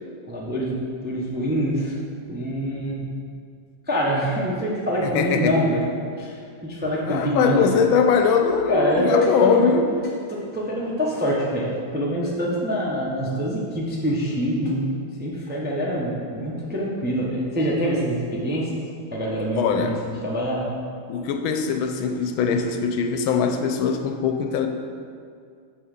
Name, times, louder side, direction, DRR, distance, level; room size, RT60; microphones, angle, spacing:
voice 1, 0.3-0.8 1.0-1.9 2.2-3.0 3.9-5.9 6.2-7.7 8.7-9.6 10.3-14.9 15.2-18.7 19.1-19.9 20.2-20.7, equal, 10° right, -4 dB, 0.4 m, -25 dB
voice 2, 5.0-5.6 7.1-9.9 19.5-20.0 21.1-24.7, left 6 dB, 85° left, 5 dB, 1.4 m, -22 dB
5.7 x 5.6 x 6.6 m, 2.3 s
omnidirectional pair, 2.2 m